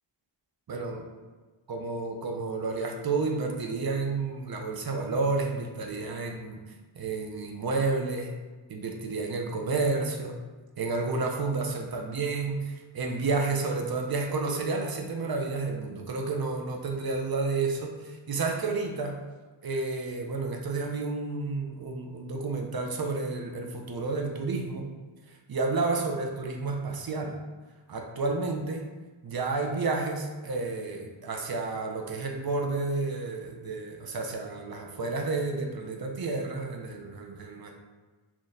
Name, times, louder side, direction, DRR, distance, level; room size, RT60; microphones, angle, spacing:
voice 1, 0.7-1.1 1.7-6.6 7.0-8.3 8.7-10.4 10.8-19.1 19.6-24.9 25.3-27.4 27.9-28.9 29.2-37.7, right 3 dB, 50° right, 2 dB, 0.6 m, -31 dB
4.1 x 2.9 x 2.6 m, 1.3 s
wide cardioid pair, 70°, 46 cm